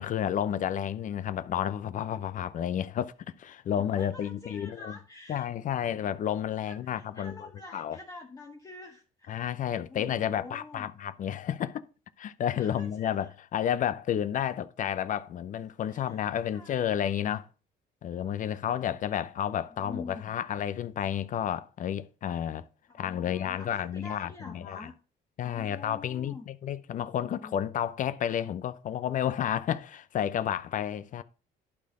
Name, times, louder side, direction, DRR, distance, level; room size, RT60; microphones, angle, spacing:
voice 1, 0.0-3.1 3.4-4.9 5.3-7.3 7.7-8.0 9.3-11.8 12.2-17.5 18.0-22.6 22.9-24.9 25.4-31.2, left 10 dB, 50° left, 0.6 m, -31 dB
voice 2, 3.8-5.5 6.6-9.4 9.9-10.9 12.6-13.3 15.9-16.9 19.8-20.3 22.9-24.9 25.4-26.5 27.1-27.6, left 3 dB, 20° left, 1.4 m, -46 dB
11.5 x 4.2 x 5.4 m
cardioid pair, 110°, 17 cm